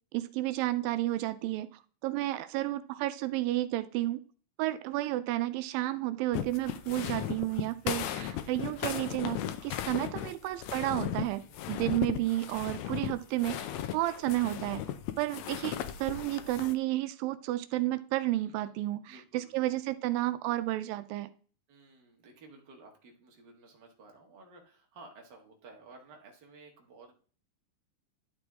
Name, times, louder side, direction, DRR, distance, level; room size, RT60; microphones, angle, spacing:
voice 1, 0.1-4.2 4.6-11.4 11.7-14.8 15.2-21.3, right 16 dB, 85° right, 12 dB, 2.3 m, -32 dB
sound 1, 6.3-16.7, left 11 dB, 80° left, 1.6 m, -36 dB
voice 2, 11.4-11.7 18.4-19.8 21.7-27.1, right 3 dB, 40° right, 1 dB, 1.8 m, -55 dB
11.0 x 5.0 x 3.6 m, 0.41 s
omnidirectional pair, 4.0 m